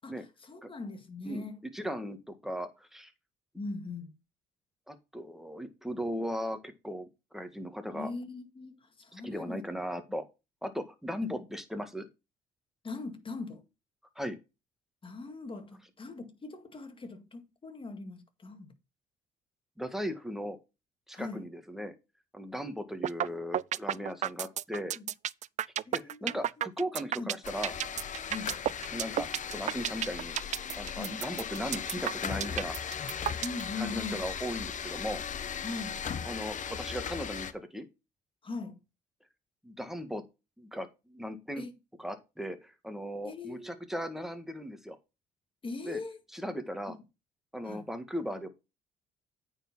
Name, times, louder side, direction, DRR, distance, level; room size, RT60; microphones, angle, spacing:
voice 1, 0.0-1.6 3.6-4.1 7.9-9.7 11.2-11.5 12.8-13.6 15.0-18.7 21.1-21.5 24.9-25.1 25.9-26.4 27.2-27.3 28.3-28.6 30.9-31.2 33.4-34.3 35.6-36.0 38.4-38.8 41.6-41.8 43.2-43.9 45.6-46.2 47.6-47.9, left 3 dB, 30° left, 1.9 m, -41 dB
voice 2, 1.7-2.2 2.4-3.1 4.9-7.1 7.3-8.1 9.1-10.2 10.6-12.1 14.2-14.4 19.8-20.6 21.1-21.9 22.3-25.0 25.9-27.7 28.9-30.4 30.8-32.8 33.8-35.2 36.3-37.9 39.6-40.2 40.6-41.7 42.0-45.0 45.9-46.0 46.3-47.0 47.5-48.5, equal, ahead, 1.8 m, -37 dB
sound 1, 23.0-23.3 23.5-33.6, right 11 dB, 45° right, 0.4 m, -31 dB
sound 2, 27.4-37.5, left 7 dB, 50° left, 1.0 m, -38 dB
8.9 x 4.6 x 5.7 m
supercardioid pair, 70°, 17 cm